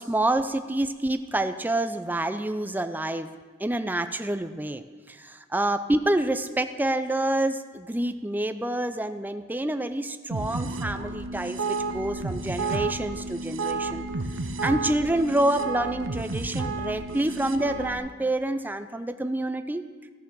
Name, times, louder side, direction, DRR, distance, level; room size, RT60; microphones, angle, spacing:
voice 1, 0.0-3.3 3.6-14.1 14.6-19.9, right 1 dB, 10° right, 9 dB, 0.4 m, -27 dB
sound 1, 10.3-18.0, right 3 dB, 70° right, 0.8 m, -31 dB
14.0 x 6.6 x 6.1 m, 1.5 s
head